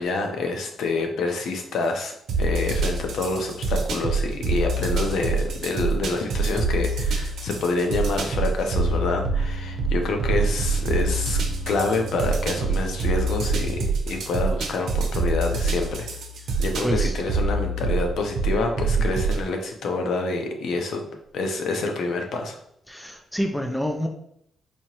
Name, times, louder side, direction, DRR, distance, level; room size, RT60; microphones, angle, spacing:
voice 1, 0.0-11.4 11.7-16.1 16.6-21.0 21.3-22.6, left 3 dB, 70° left, 4 dB, 0.7 m, -27 dB
sound 1, 2.3-19.4, right 3 dB, 80° right, 0.7 m, -26 dB
sound 2, 8.8-13.7, right 5 dB, 40° left, 0.9 m, -36 dB
voice 2, 16.8-17.2 22.9-24.1, equal, 5° left, 4 dB, 0.4 m, -27 dB
4.3 x 2.9 x 3.0 m, 0.72 s
cardioid pair, 140°, 0 cm